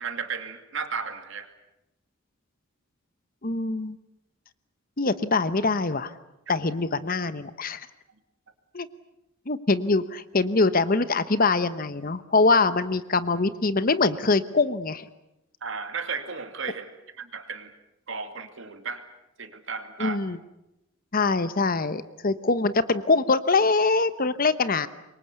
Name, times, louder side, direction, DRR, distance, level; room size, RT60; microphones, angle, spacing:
voice 1, 0.0-1.5 6.5-6.6 15.6-16.9 17.2-17.7 18.1-19.0 19.4-20.2, right 5 dB, 65° right, 8 dB, 2.4 m, -34 dB
voice 2, 3.4-4.0 5.0-6.2 6.5-7.9 8.7-8.9 9.5-15.1 20.0-20.4 21.1-24.9, left 3 dB, 45° left, 14 dB, 1.0 m, -23 dB
26.0 x 23.0 x 8.3 m, 0.89 s
head